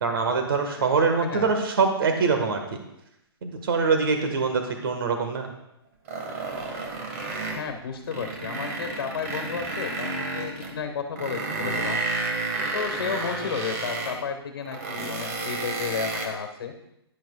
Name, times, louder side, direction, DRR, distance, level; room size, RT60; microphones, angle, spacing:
voice 1, 0.0-2.6 3.4-5.5, right 4 dB, 60° right, 5 dB, 1.5 m, -24 dB
voice 2, 1.2-1.5 7.4-12.0 12.7-16.7, left 6 dB, 60° left, 6 dB, 1.4 m, -32 dB
sound 1, 6.1-7.7 8.0-10.7 11.2-14.2 14.6-16.3, right 3 dB, 35° right, 1.5 m, -31 dB
11.0 x 10.5 x 2.3 m, 0.85 s
hypercardioid pair, 160°, 13 cm